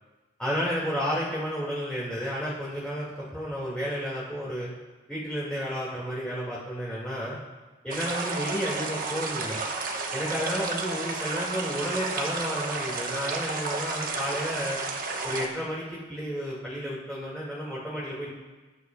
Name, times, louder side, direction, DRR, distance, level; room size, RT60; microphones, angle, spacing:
voice 1, 0.4-4.7 5.1-7.4 7.8-9.6 10.1-14.8 15.2-18.3, equal, 5° left, -8 dB, 2.1 m, -32 dB
sound 1, 7.9-15.5, right 3 dB, 40° right, 1.2 m, -32 dB
20.0 x 10.0 x 2.3 m, 1.2 s
head